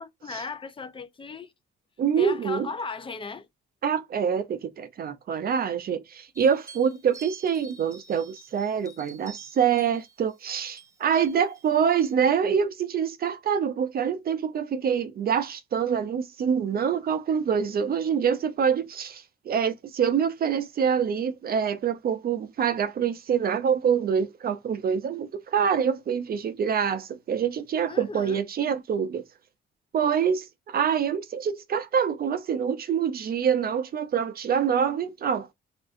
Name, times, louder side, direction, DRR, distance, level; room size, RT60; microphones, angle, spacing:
voice 1, 0.0-1.5 2.2-3.5 27.9-28.4, left 4 dB, 25° left, 0.6 m, -36 dB
voice 2, 2.0-2.7 3.8-29.2 29.9-35.5, right 7 dB, 50° right, 0.6 m, -26 dB
sound 1, 6.3-12.1, right 4 dB, 15° right, 0.9 m, -49 dB
3.6 x 2.4 x 2.5 m
cardioid pair, 90°, 20 cm